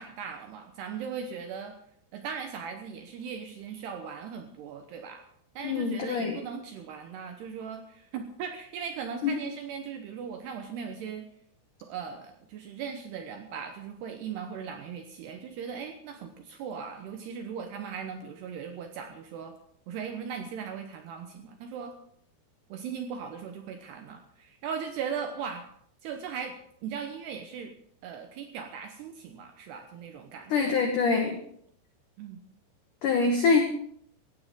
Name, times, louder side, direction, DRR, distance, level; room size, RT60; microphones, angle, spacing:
voice 1, 0.0-1.8 2.1-5.2 5.6-11.2 11.8-19.6 19.9-21.9 22.7-25.7 26.0-26.6 26.8-27.7 28.0-30.8 32.2-32.4, right 7 dB, 75° right, 6 dB, 2.5 m, -38 dB
voice 2, 5.6-6.4 9.2-9.3 30.5-31.4 33.0-33.6, left 4 dB, 80° left, 4 dB, 1.8 m, -24 dB
17.5 x 15.5 x 3.7 m, 0.66 s
omnidirectional pair, 5.9 m